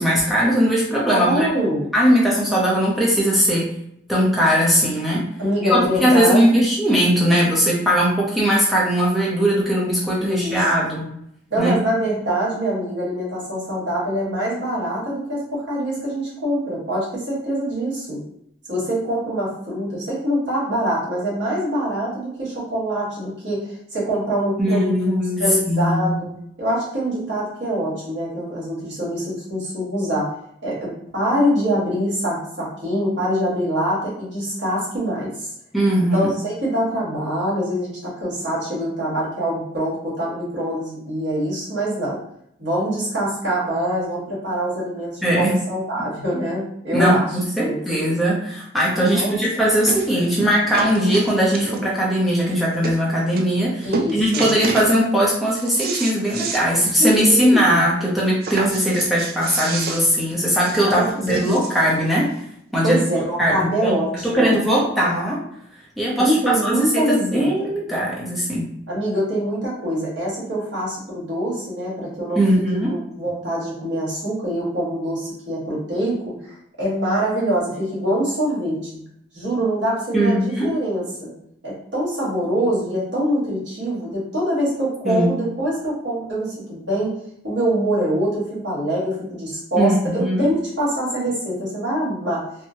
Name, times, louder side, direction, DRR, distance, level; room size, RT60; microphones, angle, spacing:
voice 1, 0.0-1.5 1.9-3.7 4.1-5.3 5.6-11.1 11.6-11.8 24.6-26.2 35.7-36.3 45.2-45.6 46.3-46.4 46.9-53.9 54.1-62.3 62.7-63.0 63.4-64.0 64.2-65.4 66.0-68.7 72.3-72.9 80.1-80.7 85.0-85.3 89.8-90.5, equal, ahead, -6 dB, 0.7 m, -19 dB
voice 2, 1.1-1.9 5.4-6.6 10.2-10.6 11.5-18.2 18.7-24.9 25.4-26.3 26.6-30.3 30.6-35.5 36.0-42.2 42.6-47.3 47.6-47.8 48.0-48.2 49.0-49.4 53.8-54.5 57.0-57.8 60.8-62.0 62.8-64.5 66.2-67.7 68.9-72.4 72.9-79.0 79.3-81.3 81.6-87.1 87.4-92.4, right 1 dB, 70° right, -7 dB, 1.4 m, -24 dB
sound 1, 49.1-49.2 49.9-50.1 50.4-52.0 52.5-52.6 52.8-53.0 53.4-53.7 53.9-54.9 55.3-56.7 57.0-57.1 57.4-57.5 58.4-61.9 62.7-62.8, right 4 dB, 50° right, 0.3 m, -29 dB
2.9 x 2.2 x 2.7 m, 0.73 s
head